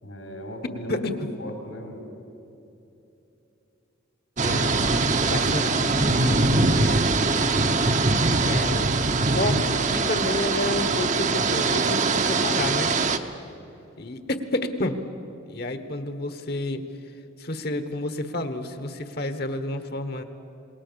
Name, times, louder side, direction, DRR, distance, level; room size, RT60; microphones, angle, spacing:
voice 1, 0.0-2.1, equal, 75° left, 2 dB, 4.2 m, -37 dB
voice 2, 4.4-4.8 5.2-6.4 8.5-8.9 9.3-12.9 14.0-15.0 15.5-16.8 17.4-20.2, left 2 dB, 50° left, 9 dB, 1.3 m, -30 dB
sound 1, 4.4-13.2, right 3 dB, 35° right, 0.9 m, -22 dB
27.0 x 20.0 x 7.0 m, 2.9 s
head